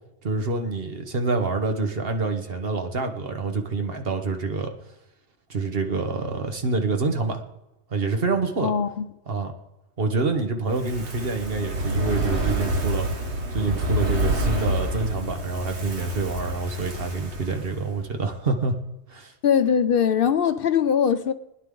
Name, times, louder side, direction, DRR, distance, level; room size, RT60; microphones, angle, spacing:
voice 1, 0.2-4.7 5.5-7.4 7.9-8.7 9.3-9.5 10.0-13.1 13.5-18.7 19.1-19.3, right 3 dB, 60° right, 1.4 m, -27 dB
voice 2, 8.6-9.1 19.4-21.3, left 7 dB, 60° left, 0.7 m, -21 dB
Fire, 10.7-18.0 18.3-18.4, right 1 dB, 80° right, 1.8 m, -27 dB
20.5 x 10.0 x 3.8 m
omnidirectional pair, 1.1 m